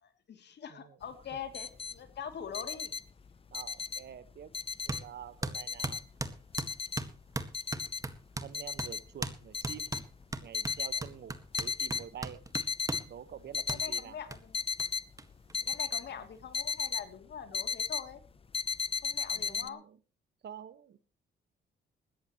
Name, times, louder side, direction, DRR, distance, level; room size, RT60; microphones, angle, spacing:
voice 1, 0.0-2.9 13.8-14.6 15.7-18.2 19.0-19.8, left 7 dB, 60° left, 7 dB, 3.0 m, -43 dB
sound 1, 1.0-1.1 1.3-2.0 2.3-4.2 4.5-5.3 5.5-7.2 7.5-8.1 8.5-9.1 9.5-11.1 11.5-12.1 12.4-13.1 13.4-14.0 14.5-17.0 17.3-18.1 18.5-19.7, left 5 dB, 30° left, 0.7 m, -35 dB
voice 2, 3.5-4.5 4.8-6.0 8.4-9.9 10.4-12.4 13.1-14.2 16.2-16.3 19.3-20.0 20.4-21.0, right 9 dB, 60° right, 14 dB, 1.5 m, -47 dB
sound 2, 4.9-5.0 5.4-8.5 8.8-8.9 9.2-9.4 9.6-13.1 13.7-13.8 14.3-14.4 14.8-14.9 15.2-15.3 15.5-16.2, right 2 dB, 15° right, 1.8 m, -37 dB
19.5 x 14.5 x 3.1 m, 0.35 s
cardioid pair, 90°, 20 cm